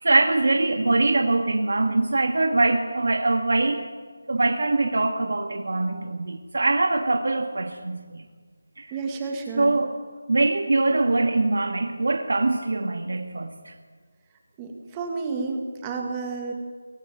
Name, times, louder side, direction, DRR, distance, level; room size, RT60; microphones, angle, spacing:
voice 1, 0.0-3.9 4.3-8.3 8.8-8.9 9.6-10.0 10.3-13.7, right 2 dB, 60° right, 4 dB, 2.0 m, -23 dB
voice 2, 8.9-9.7 14.6-16.5, right 4 dB, 10° right, 2 dB, 1.8 m, -31 dB
22.0 x 18.0 x 9.1 m, 1.5 s
figure-of-eight pair, 175°, 0 cm